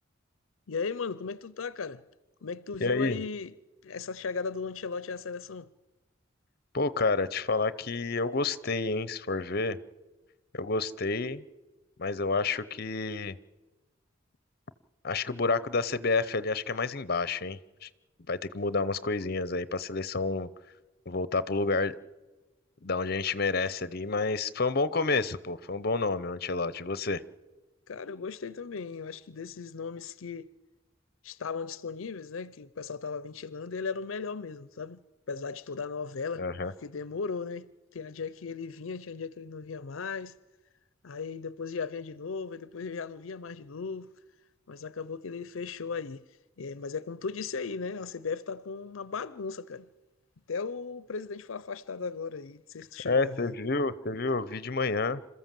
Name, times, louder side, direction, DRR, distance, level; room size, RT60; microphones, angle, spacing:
voice 1, 0.7-2.0 2.4-3.5 3.8-5.7 27.9-30.5 31.2-35.0 35.3-40.4 41.0-44.1 44.7-46.2 46.6-49.9 50.5-53.5, left 5 dB, 80° left, 0.6 m, -37 dB
voice 2, 2.8-3.2 6.7-9.8 10.5-11.4 12.0-13.4 15.0-17.9 18.3-20.5 21.1-22.0 22.8-27.2 36.4-36.7 53.0-55.2, left 3 dB, 50° left, 0.8 m, -29 dB
27.0 x 14.0 x 7.6 m
head